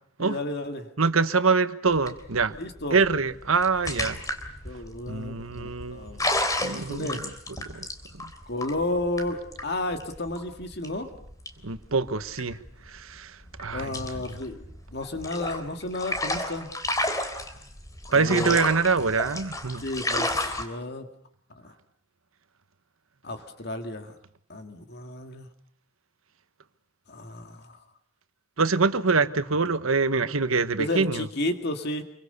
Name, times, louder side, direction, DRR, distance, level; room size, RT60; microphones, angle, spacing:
voice 1, 0.2-0.9 2.6-3.0 4.6-6.3 6.7-7.2 8.5-11.1 13.7-14.6 14.9-16.7 18.1-18.6 19.8-21.0 21.6-21.7 23.2-24.1 24.5-25.5 27.1-27.8 30.8-32.0, left 2 dB, 50° left, 2.1 m, -32 dB
voice 2, 1.0-2.5 2.9-4.2 5.1-6.1 6.6-7.3 7.6-7.9 11.6-12.6 12.9-14.0 18.1-19.8 28.6-31.3, right 4 dB, 85° right, 1.3 m, -25 dB
sound 1, 1.9-13.1 13.4-20.6, left 1 dB, 15° left, 3.3 m, -32 dB
28.0 x 24.0 x 6.8 m
head